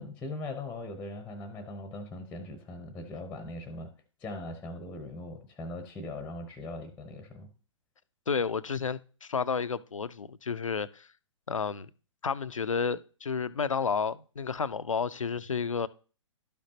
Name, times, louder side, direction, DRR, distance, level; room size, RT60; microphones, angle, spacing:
voice 1, 0.0-3.9 4.2-7.5, left 2 dB, 10° left, 0.8 m, -40 dB
voice 2, 8.3-11.1 11.5-11.9 12.2-15.9, left 5 dB, 85° left, 0.5 m, -31 dB
12.0 x 5.2 x 2.9 m
figure-of-eight pair, 120°, 16 cm